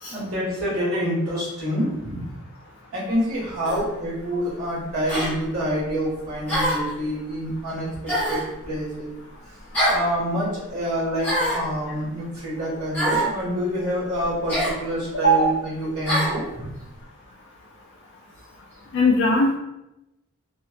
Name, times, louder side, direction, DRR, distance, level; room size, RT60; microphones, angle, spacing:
voice 1, 0.1-2.3 2.9-7.9 8.3-9.1 9.9-16.7, equal, 70° right, -7 dB, 1.2 m, -27 dB
sound 1, 3.7-3.9 5.1-5.3 6.5-6.9 8.1-8.5 9.7-10.1 11.2-11.7 12.9-13.3 14.5-14.8 16.1-16.4, equal, 5° left, 1.0 m, -24 dB
voice 2, 18.9-19.5, equal, 55° left, -3 dB, 0.3 m, -18 dB
2.7 x 2.1 x 2.3 m, 0.91 s
head